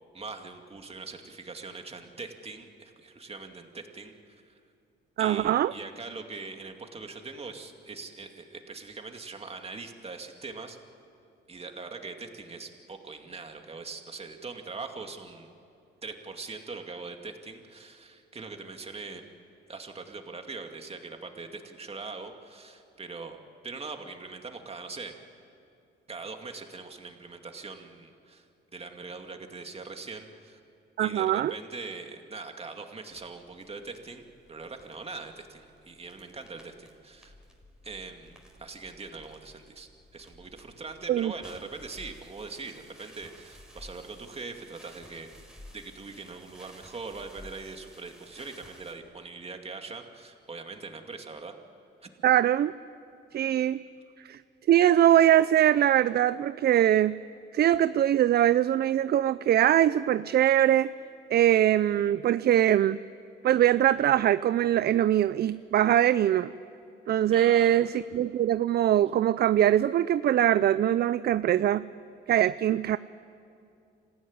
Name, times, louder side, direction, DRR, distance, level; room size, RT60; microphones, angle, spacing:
voice 1, 0.1-4.5 5.2-10.8 11.5-15.5 16.0-19.2 19.7-23.4 23.6-25.1 26.1-28.5 28.7-30.6 31.0-37.3 37.8-45.3 45.7-51.5 52.0-52.1 67.3-67.8, right 4 dB, 30° right, 4 dB, 2.4 m, -42 dB
voice 2, 5.2-5.7 31.0-31.5 41.1-41.3 52.2-52.7 53.3-53.8 54.2-54.4 54.7-57.2 57.5-60.9 61.3-63.0 63.4-66.5 67.1-71.8 72.3-73.0, right 11 dB, 55° right, 16 dB, 0.5 m, -22 dB
sound 1, 33.1-48.9, equal, 5° right, 4.8 m, -54 dB
26.5 x 15.5 x 9.7 m, 2.5 s
cardioid pair, 90°, 20 cm